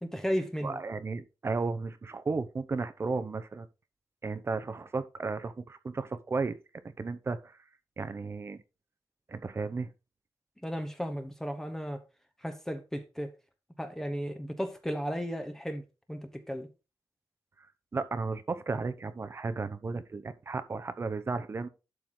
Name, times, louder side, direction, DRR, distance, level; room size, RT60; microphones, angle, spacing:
voice 1, 0.0-0.8 10.6-12.0 12.4-13.3 13.8-15.8 16.1-16.7, equal, 5° left, 1.0 m, -34 dB
voice 2, 0.6-3.7 4.2-6.6 6.8-7.6 8.0-8.6 9.3-9.9 17.9-21.7, right 4 dB, 35° right, 0.7 m, -34 dB
11.5 x 4.7 x 3.8 m
wide cardioid pair, 175°, 8 cm